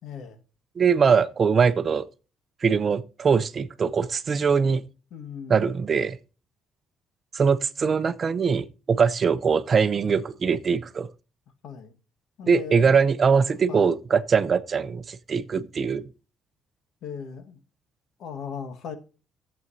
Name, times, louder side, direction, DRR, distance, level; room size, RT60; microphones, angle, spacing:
voice 1, 0.0-0.4 5.1-5.7 10.0-10.2 11.6-11.9 12.4-13.0 13.5-13.9 17.0-17.6 18.2-19.0, left 7 dB, 70° left, 1.5 m, -38 dB
voice 2, 0.8-2.1 2.6-4.8 5.5-6.2 7.3-11.1 12.5-16.0, right 6 dB, 35° right, 0.6 m, -22 dB
14.0 x 7.8 x 2.7 m
cardioid pair, 120°, 0 cm